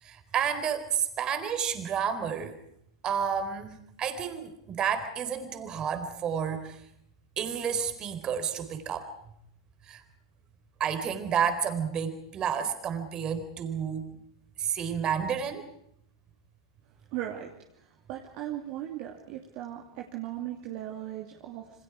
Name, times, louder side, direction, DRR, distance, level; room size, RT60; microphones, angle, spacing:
voice 1, 0.0-2.6 3.0-6.8 7.4-9.1 9.9-10.0 10.8-14.1 14.6-15.6, right 7 dB, 30° right, 9 dB, 3.9 m, -30 dB
voice 2, 17.1-17.5 18.1-21.6, right 12 dB, 45° right, 0 dB, 2.9 m, -37 dB
28.0 x 26.0 x 5.0 m, 0.76 s
hypercardioid pair, 100°, 3 cm